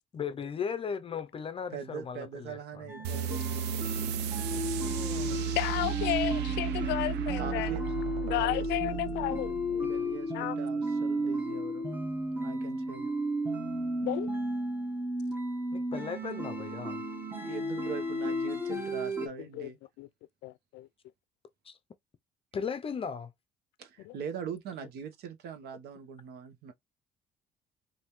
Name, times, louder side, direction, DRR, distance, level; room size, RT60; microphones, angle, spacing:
voice 1, 0.1-2.9 4.8-5.5 15.7-17.0 21.6-21.8 22.5-23.3, left 6 dB, 35° left, 0.5 m, -37 dB
voice 2, 1.7-3.4 3.8-4.1 7.4-7.8 8.3-8.6 9.9-11.9 12.4-13.1 17.4-19.8 23.8-26.7, right 7 dB, 70° right, 1.0 m, -41 dB
sound 1, 2.9-19.3, equal, 10° right, 1.1 m, -33 dB
sound 2, 3.0-10.2, right 9 dB, 90° right, 0.7 m, -34 dB
voice 3, 5.6-7.8 8.2-9.9 10.3-10.6 14.0-14.3 19.2-19.7 20.0-20.1 20.4-20.9 24.1-24.2, left 16 dB, 85° left, 0.4 m, -33 dB
5.3 x 2.6 x 3.0 m
cardioid pair, 110°, 17 cm